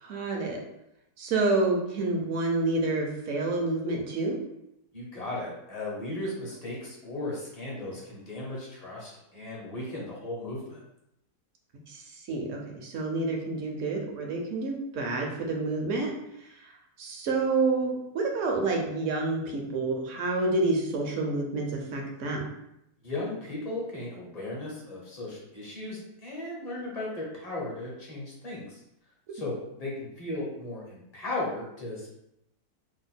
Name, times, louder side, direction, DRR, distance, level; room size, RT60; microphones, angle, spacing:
voice 1, 0.0-0.6 1.2-4.4 11.9-16.1 16.4-16.7 17.0-22.4, right 3 dB, 60° right, 1 dB, 0.9 m, -28 dB
voice 2, 4.9-10.8 23.0-28.8 29.3-32.1, left 2 dB, 35° left, -4 dB, 0.7 m, -36 dB
2.9 x 2.1 x 4.0 m, 0.81 s
omnidirectional pair, 1.7 m